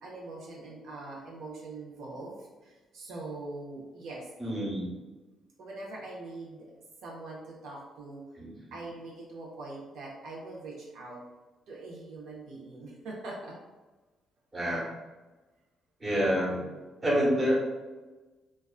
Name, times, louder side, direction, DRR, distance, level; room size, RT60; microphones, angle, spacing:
voice 1, 0.0-4.3 5.6-6.7 7.0-8.2 8.7-11.2 11.7-13.5, right 2 dB, 80° right, -3 dB, 0.5 m, -42 dB
voice 2, 4.4-4.9 8.3-8.5 14.5-14.9 16.0-16.6 17.0-17.5, equal, 25° right, -5 dB, 0.9 m, -27 dB
2.3 x 2.2 x 2.3 m, 1.2 s
cardioid pair, 90°, 0 cm